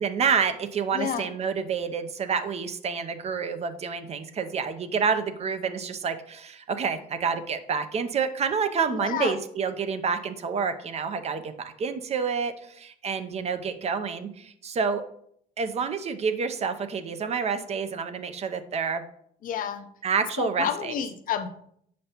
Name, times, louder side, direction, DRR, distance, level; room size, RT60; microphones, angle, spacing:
voice 1, 0.0-15.0 15.6-19.0 20.0-20.9, right 6 dB, 40° right, 10 dB, 0.5 m, -28 dB
voice 2, 0.9-1.3 8.9-9.3 19.4-19.9 20.4-21.5, left 8 dB, 55° left, 8 dB, 0.6 m, -30 dB
6.7 x 5.2 x 2.9 m, 0.67 s
cardioid pair, 110°, 17 cm